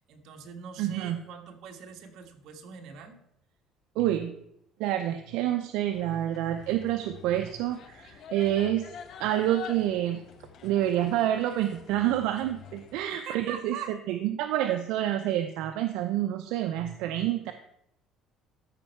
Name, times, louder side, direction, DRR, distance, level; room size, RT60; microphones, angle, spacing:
voice 1, 0.1-3.2 13.1-13.9, right 7 dB, 65° right, 4 dB, 1.5 m, -42 dB
voice 2, 0.8-1.2 4.0-4.3 4.8-8.8 9.2-10.2 10.6-17.5, right 12 dB, 80° right, 7 dB, 0.6 m, -28 dB
sound 1, 5.9-13.1, left 7 dB, 50° left, 1.0 m, -47 dB
13.0 x 5.4 x 4.5 m, 0.76 s
cardioid pair, 125°, 0 cm